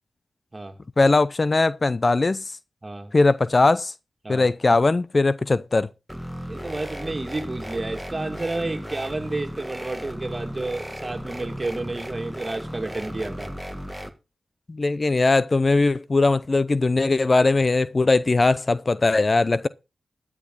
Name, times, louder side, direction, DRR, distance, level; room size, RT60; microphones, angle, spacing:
voice 1, 1.0-2.4 3.1-3.9 4.3-5.9 14.7-19.7, left 3 dB, 40° left, 0.5 m, -20 dB
voice 2, 2.8-3.1 4.2-4.5 6.5-13.5, right 2 dB, 30° right, 2.5 m, -31 dB
sound 1, 6.1-14.1, equal, ahead, 1.6 m, -35 dB
13.5 x 8.6 x 4.1 m
cardioid pair, 50°, 0 cm